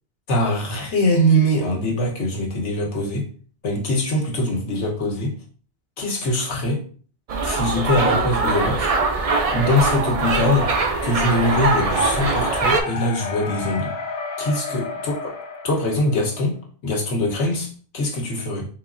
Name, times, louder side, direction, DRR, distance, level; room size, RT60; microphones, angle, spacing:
voice 1, 0.3-3.3 3.6-5.3 6.0-6.8 7.4-8.9 9.5-10.7 11.0-13.9 14.4-15.1 15.6-16.5 16.8-18.7, left 1 dB, 85° left, 0 dB, 1.3 m, -22 dB
sound 1, 7.3-12.8, right 3 dB, 55° right, 0.4 m, -22 dB
sound 2, 10.4-16.5, left 4 dB, 65° left, 0.9 m, -32 dB
4.0 x 3.0 x 2.5 m, 0.43 s
omnidirectional pair, 1.2 m